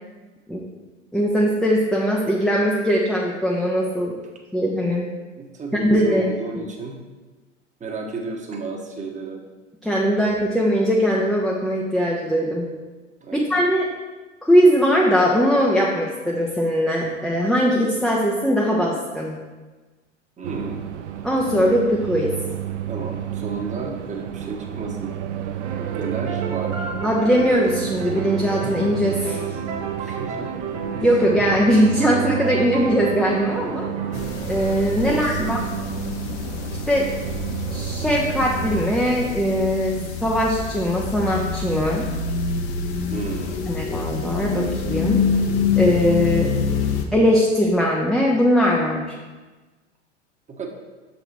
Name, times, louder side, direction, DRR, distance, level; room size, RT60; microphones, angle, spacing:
voice 1, 1.1-4.1 4.5-5.1 5.7-6.3 9.8-12.7 13.3-13.9 14.4-19.4 21.2-22.3 27.0-29.6 31.0-33.9 34.5-35.6 36.9-37.1 37.7-42.1 43.7-45.3 45.8-46.5 47.1-49.1, equal, ahead, -3 dB, 0.6 m, -20 dB
voice 2, 5.3-7.0 7.8-9.4 13.2-13.6 20.4-20.8 22.9-25.1 25.9-26.9 30.0-30.5 35.1-35.5 43.1-43.6 50.5-50.7, right 3 dB, 20° right, 1 dB, 1.1 m, -32 dB
sound 1, 20.4-38.8, right 11 dB, 70° right, 0.6 m, -31 dB
sound 2, 25.6-34.6, right 5 dB, 55° right, 1.1 m, -32 dB
sound 3, 34.1-47.1, left 5 dB, 45° left, 0.9 m, -26 dB
6.6 x 4.3 x 4.5 m, 1.3 s
figure-of-eight pair, 80°, 36 cm